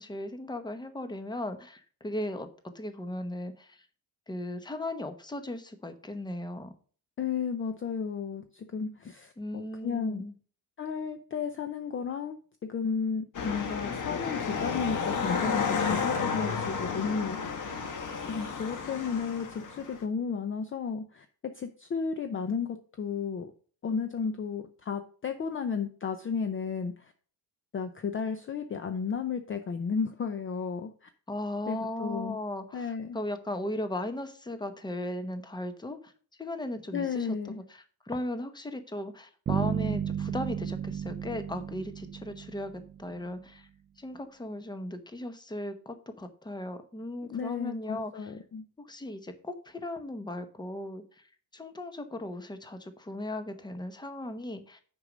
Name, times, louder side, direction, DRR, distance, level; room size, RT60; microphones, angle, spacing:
voice 1, 0.0-2.5 2.7-3.9 4.3-6.7 9.4-10.3 31.3-36.1 36.4-43.7 44.0-48.3 48.8-51.3 51.5-54.8, left 1 dB, 10° left, 9 dB, 0.9 m, -37 dB
voice 2, 7.2-10.2 10.8-17.6 18.3-23.5 23.8-27.1 27.7-31.1 31.7-32.4 32.7-33.2 36.9-37.6 47.3-48.6, left 6 dB, 30° left, 8 dB, 0.6 m, -33 dB
sound 1, 13.3-20.0, left 5 dB, 45° left, 1.3 m, -32 dB
sound 2, 39.5-43.2, right 8 dB, 25° right, 0.4 m, -33 dB
6.3 x 5.3 x 6.3 m, 0.43 s
cardioid pair, 130°, 42 cm